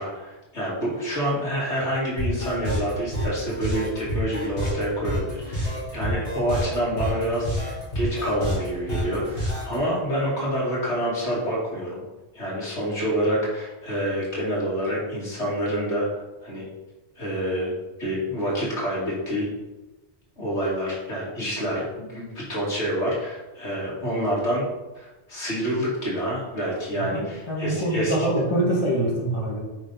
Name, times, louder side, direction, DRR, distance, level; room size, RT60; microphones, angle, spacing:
voice 1, 0.0-12.0 12.3-16.7 17.2-17.7 18.0-19.5 20.4-24.7 24.9-28.1, equal, 80° left, -5 dB, 2.8 m, -27 dB
sound 1, 2.2-9.7, equal, 55° left, 3.3 m, -28 dB
voice 2, 27.5-29.6, right 1 dB, 25° left, -5 dB, 2.1 m, -24 dB
9.2 x 5.3 x 4.1 m, 1.1 s
omnidirectional pair, 1.1 m